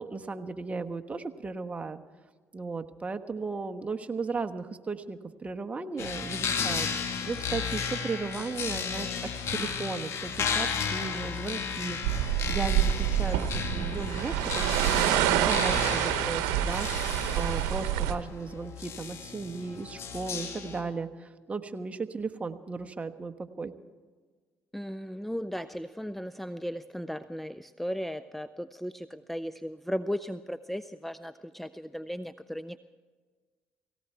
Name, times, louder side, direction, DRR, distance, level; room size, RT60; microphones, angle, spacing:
voice 1, 0.0-2.0 2.5-16.9 17.3-23.7, right 4 dB, 25° right, 6 dB, 1.2 m, -36 dB
sound 1, 6.0-20.8, left 6 dB, 55° left, 2.5 m, -34 dB
sound 2, 12.0-18.1, right 11 dB, 80° right, 0.9 m, -27 dB
voice 2, 24.7-32.8, equal, 5° left, 13 dB, 0.5 m, -36 dB
18.0 x 17.5 x 4.6 m, 1.5 s
supercardioid pair, 65°, 5 cm